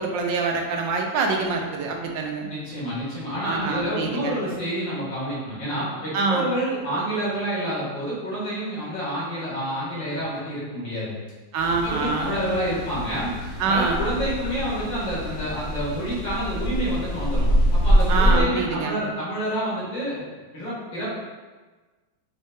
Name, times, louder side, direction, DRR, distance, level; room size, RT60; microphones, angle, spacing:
voice 1, 0.0-2.5 3.4-4.4 6.1-6.5 11.5-12.3 13.6-14.0 18.1-19.0, right 4 dB, 85° right, 2 dB, 1.3 m, -25 dB
voice 2, 2.5-11.1 11.8-13.3 13.7-20.2 20.5-21.2, right 1 dB, 85° left, -8 dB, 2.5 m, -28 dB
sound 1, 11.6-18.4, equal, 70° left, 0.6 m, -24 dB
5.2 x 2.7 x 3.5 m, 1.3 s
omnidirectional pair, 1.9 m